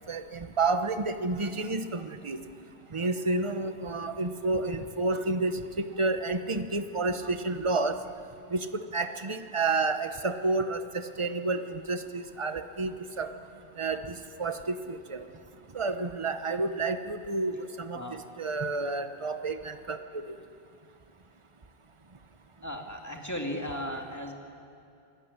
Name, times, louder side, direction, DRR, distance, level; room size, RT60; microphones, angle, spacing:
voice 1, 0.1-2.4 2.9-8.0 8.5-8.7 8.9-13.3 13.8-15.2 15.7-20.4, right 3 dB, 30° right, 8 dB, 1.1 m, -30 dB
voice 2, 22.6-24.3, equal, 15° left, 1 dB, 2.5 m, -36 dB
27.5 x 20.0 x 9.8 m, 2.5 s
omnidirectional pair, 1.0 m